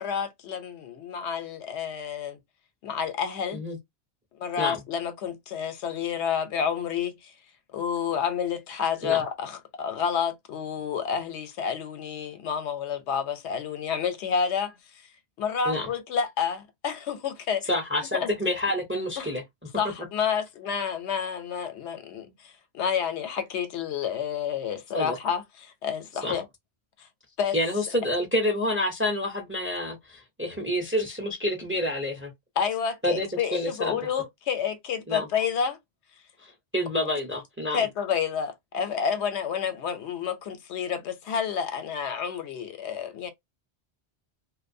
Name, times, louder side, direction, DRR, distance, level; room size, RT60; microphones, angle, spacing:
voice 1, 0.0-2.4 2.8-3.6 4.4-7.3 7.7-15.0 15.4-17.6 18.1-18.3 19.2-19.3 19.8-26.4 27.0-27.1 27.4-27.6 32.6-35.8 37.7-43.3, left 7 dB, 85° left, 0.9 m, -29 dB
voice 2, 17.7-19.4 24.9-25.2 26.2-26.3 27.5-32.3 33.0-34.0 35.1-35.3 36.4-37.8, left 1 dB, 15° right, 0.4 m, -28 dB
2.5 x 2.2 x 2.5 m
omnidirectional pair, 1.1 m